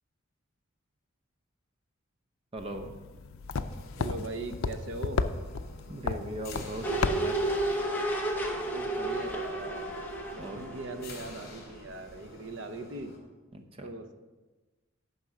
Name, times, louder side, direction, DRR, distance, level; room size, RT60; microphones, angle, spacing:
voice 1, 2.5-2.9 5.9-7.5 10.4-10.6 13.5-13.9, right 1 dB, 25° right, 5 dB, 0.8 m, -39 dB
sound 1, 2.6-7.8, left 4 dB, 80° left, 0.5 m, -34 dB
sound 2, 3.5-13.2, left 2 dB, 50° left, 2.7 m, -50 dB
voice 2, 4.0-5.2 8.7-9.9 10.3-13.1 13.8-14.2, right 2 dB, 60° right, 7 dB, 0.8 m, -40 dB
sound 3, 6.8-11.8 12.1-12.2, right 1 dB, 10° left, 1.0 m, -32 dB
10.0 x 5.5 x 6.0 m, 1.2 s
head